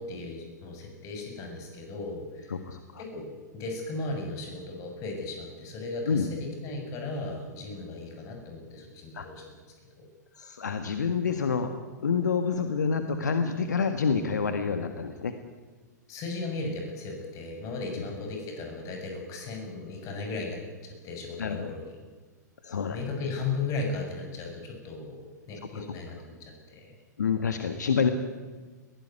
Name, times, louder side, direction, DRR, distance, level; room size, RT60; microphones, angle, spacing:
voice 1, 0.0-2.6 3.0-3.3 3.5-9.4 10.0-10.1 16.1-21.9 22.9-26.9, left 3 dB, 35° left, 3 dB, 7.3 m, -36 dB
voice 2, 2.5-3.0 6.1-6.3 9.1-9.3 10.4-11.7 12.0-15.3 21.4-21.7 22.6-23.0 25.7-25.9 27.2-28.1, left 5 dB, 70° left, 8 dB, 1.6 m, -28 dB
21.5 x 16.5 x 9.7 m, 1.4 s
figure-of-eight pair, 105°, 10 cm